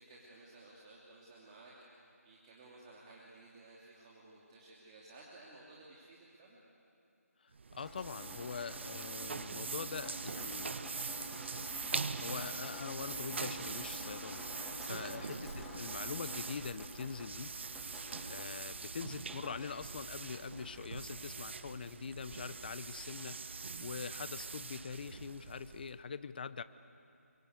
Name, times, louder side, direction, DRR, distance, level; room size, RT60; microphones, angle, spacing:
voice 1, 0.0-1.7 2.2-6.6 14.9-15.3, right 2 dB, 25° right, -5 dB, 3.0 m, -56 dB
sound 1, 7.5-26.0, right 5 dB, 45° right, 1.0 m, -43 dB
voice 2, 7.7-10.7 12.2-17.5 18.3-23.4 23.8-26.6, left 6 dB, 35° left, 14 dB, 0.8 m, -43 dB
Drip, 7.8-23.2, equal, ahead, 2.3 m, -50 dB
28.0 x 23.5 x 8.2 m, 2.5 s
figure-of-eight pair, 165°, 8 cm